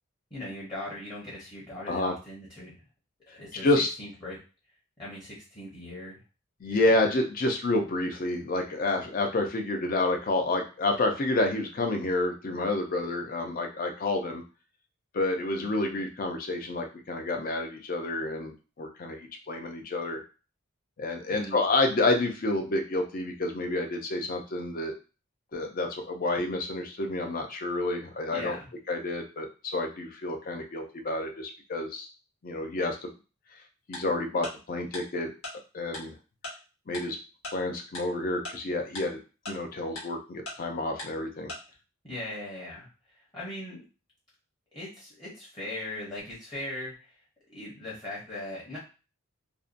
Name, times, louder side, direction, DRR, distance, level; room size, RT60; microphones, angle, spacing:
voice 1, 0.3-2.8 3.3-3.7 4.0-4.4 5.0-6.2 6.7-6.9 21.3-21.6 28.3-28.7 42.0-42.9 43.3-43.8 44.7-46.9 47.5-48.8, left 1 dB, 20° left, -7 dB, 0.8 m, -39 dB
voice 2, 6.6-14.4 15.1-20.2 21.0-24.9 25.5-28.6 28.9-32.1 32.4-33.1 33.9-35.3 35.7-36.1 36.9-37.2 37.5-39.2 39.5-41.5, left 2 dB, 40° left, 3 dB, 0.5 m, -29 dB
Tick-tock, 33.9-34.0 34.4-34.5 34.9-35.0 35.4-35.5 35.9-36.0 36.4-36.5 36.9-37.0 37.4-37.5 37.9-38.0 38.4-38.5 39.0-39.1 39.5-39.6 40.0-40.1 40.5-40.6 41.0-41.1 41.5-41.6, left 2 dB, 85° left, 1.0 m, -37 dB
2.6 x 2.2 x 2.5 m, 0.33 s
head